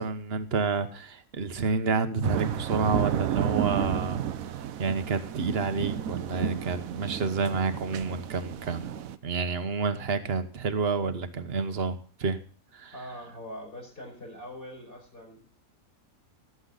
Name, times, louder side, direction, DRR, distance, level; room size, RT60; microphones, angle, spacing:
voice 1, 0.0-4.2 4.8-9.0 9.2-12.4 12.7-12.9, right 4 dB, 50° right, 10 dB, 1.2 m, -29 dB
sound 1, 2.2-9.2, right 9 dB, 80° right, 1.1 m, -32 dB
voice 2, 12.9-15.5, equal, 40° left, 1 dB, 5.2 m, -42 dB
18.0 x 8.0 x 3.9 m, 0.42 s
omnidirectional pair, 1.5 m